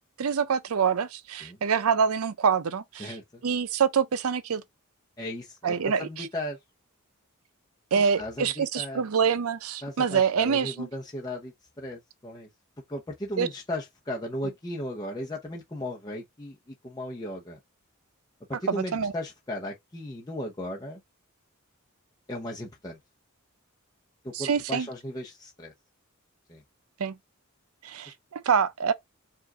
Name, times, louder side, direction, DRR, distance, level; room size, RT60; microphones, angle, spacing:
voice 1, 0.2-3.2 3.4-4.6 5.6-6.3 7.9-10.9 13.4-13.5 18.7-19.1 24.3-24.9 27.0-27.2 27.8-28.9, right 6 dB, 75° right, 0.5 m, -26 dB
voice 2, 3.0-3.4 5.2-6.6 8.0-9.0 9.8-12.5 12.9-17.6 18.5-21.0 22.3-23.0 24.2-25.7 26.5-26.6, left 1 dB, 20° left, 0.8 m, -36 dB
5.0 x 2.5 x 3.7 m
head